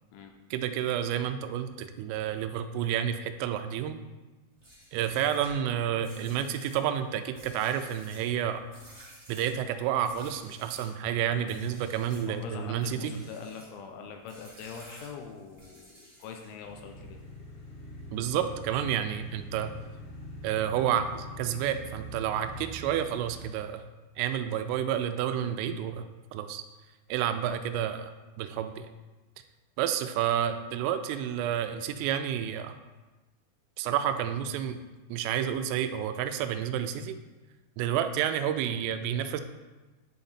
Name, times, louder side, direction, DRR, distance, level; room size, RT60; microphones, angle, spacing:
voice 1, 0.5-4.0 4.9-8.6 9.3-13.1 18.1-19.7 20.4-23.8 24.2-26.1 26.3-26.6 27.1-28.9 29.8-32.8 33.8-34.8 35.1-37.2 37.8-39.4, right 9 dB, 85° right, 9 dB, 3.1 m, -30 dB
sound 1, 4.5-11.0 11.4-12.3 12.7-13.8 14.3-16.7, right 1 dB, 20° right, 1.3 m, -53 dB
voice 2, 12.2-17.2, left 6 dB, 85° left, 3 dB, 3.0 m, -43 dB
sound 2, 16.6-23.4, left 1 dB, 60° left, 3.5 m, -44 dB
11.0 x 3.9 x 4.2 m, 1.2 s
omnidirectional pair, 5.7 m